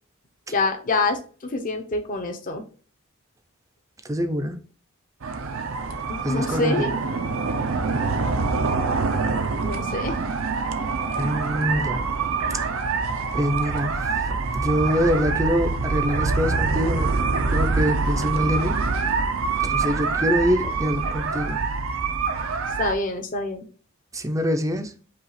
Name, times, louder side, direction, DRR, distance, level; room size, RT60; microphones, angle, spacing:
voice 1, 0.5-1.2 1.5-2.6 6.1-7.0 9.6-10.2 22.8-23.7, left 2 dB, 40° left, 0.8 m, -26 dB
voice 2, 4.1-4.6 6.2-7.0 11.2-12.0 13.3-13.9 14.5-17.1 17.5-18.7 19.6-21.6 24.1-24.9, equal, 15° right, 0.5 m, -24 dB
sound 1, 5.2-22.9, right 4 dB, 70° right, 0.6 m, -25 dB
5.3 x 2.4 x 4.1 m
head